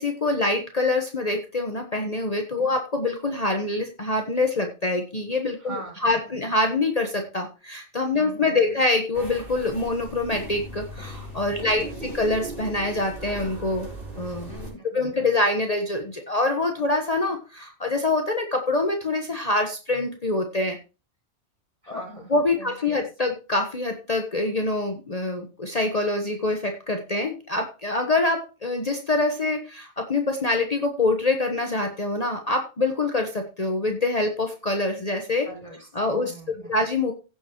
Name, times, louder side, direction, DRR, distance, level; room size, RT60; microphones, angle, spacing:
voice 1, 0.0-13.9 14.2-14.5 14.9-20.8 21.9-22.0 22.3-35.5 35.9-36.3 36.7-37.1, left 2 dB, 35° left, 4 dB, 1.2 m, -25 dB
voice 2, 5.6-6.3 8.1-8.8 11.5-12.1 14.5-15.3 21.8-23.1 35.4-35.9 36.2-36.8, right 2 dB, 25° right, -1 dB, 5.5 m, -42 dB
sound 1, 9.1-14.7, right 1 dB, 55° right, 4.4 m, -38 dB
16.5 x 7.2 x 3.0 m, 0.32 s
omnidirectional pair, 1.2 m